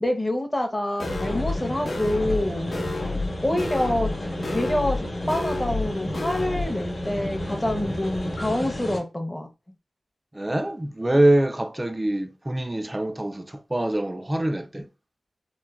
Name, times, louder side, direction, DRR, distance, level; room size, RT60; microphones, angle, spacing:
voice 1, 0.0-2.7 3.4-4.1 4.5-9.5, left 1 dB, 20° left, 0.6 m, -26 dB
sound 1, 1.0-1.6 1.9-2.4 2.7-3.3 3.6-4.1 4.4-5.0 5.3-5.9 6.1-6.6, left 2 dB, 65° left, 0.5 m, -30 dB
sound 2, 1.0-9.0, left 1 dB, 50° left, 0.9 m, -32 dB
voice 2, 10.3-14.9, right 1 dB, 20° right, 0.3 m, -24 dB
3.0 x 2.1 x 2.3 m
wide cardioid pair, 70°, 0 cm